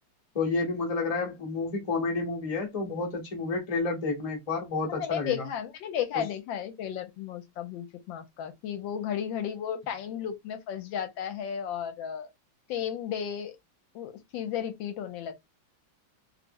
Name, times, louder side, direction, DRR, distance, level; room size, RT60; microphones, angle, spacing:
voice 1, 0.3-5.5, left 3 dB, 25° left, 0.8 m, -30 dB
voice 2, 4.9-12.3 12.7-13.5 13.9-15.4, left 9 dB, 80° left, 1.3 m, -34 dB
3.2 x 2.0 x 3.5 m
omnidirectional pair, 2.1 m